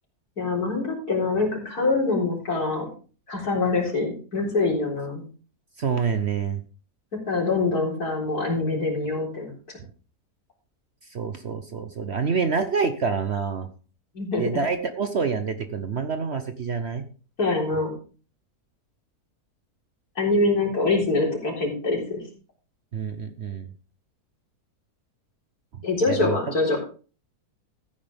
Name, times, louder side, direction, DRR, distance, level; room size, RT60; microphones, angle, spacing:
voice 1, 0.4-2.9 3.3-5.2 7.3-9.5 14.1-14.4 17.4-17.9 20.2-22.2 25.8-26.8, left 3 dB, 70° left, -1 dB, 4.4 m, -24 dB
voice 2, 5.8-6.6 11.1-13.7 14.4-17.0 22.9-23.7 25.7-26.5, right 5 dB, 50° right, 9 dB, 1.0 m, -27 dB
14.5 x 9.4 x 3.5 m, 0.38 s
omnidirectional pair, 1.7 m